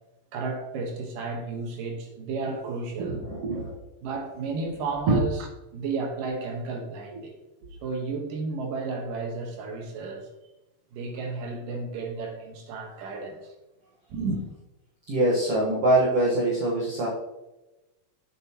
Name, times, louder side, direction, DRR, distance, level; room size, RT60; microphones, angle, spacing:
voice 1, 0.3-3.2 4.0-5.4 5.7-7.3 7.8-10.3 10.9-13.5 14.1-14.4, right 3 dB, 75° right, 2.7 m, -32 dB
voice 2, 3.0-3.8 5.1-5.2 7.1-7.2 15.1-17.1, right 1 dB, 55° right, 1.8 m, -24 dB
7.6 x 7.4 x 2.9 m
omnidirectional pair, 4.1 m